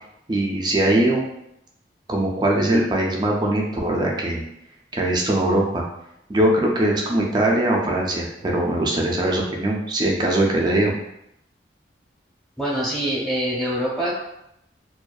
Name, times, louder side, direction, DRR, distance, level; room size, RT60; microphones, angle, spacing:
voice 1, 0.3-1.2 2.1-4.4 4.9-5.8 6.3-10.9, right 1 dB, 25° right, -1 dB, 0.3 m, -21 dB
voice 2, 12.6-14.1, right 1 dB, ahead, -7 dB, 0.8 m, -24 dB
2.5 x 2.3 x 2.2 m, 0.81 s
head